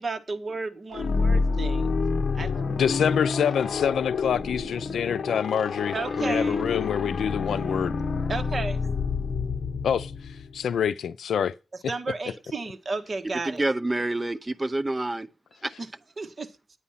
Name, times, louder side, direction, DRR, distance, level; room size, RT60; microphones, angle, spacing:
voice 1, 0.0-2.0 2.3-2.5 5.9-6.6 8.3-8.8 11.9-13.6 16.2-16.5, right 3 dB, 40° right, 1.4 m, -33 dB
sound 1, 0.9-10.6, left 4 dB, 60° left, 1.2 m, -28 dB
voice 2, 2.7-8.0 9.8-10.4 10.6-11.5, left 8 dB, 85° left, 0.5 m, -26 dB
voice 3, 13.4-15.3 15.6-15.8, right 2 dB, 20° right, 0.8 m, -27 dB
9.7 x 9.1 x 5.7 m
wide cardioid pair, 100°, 0 cm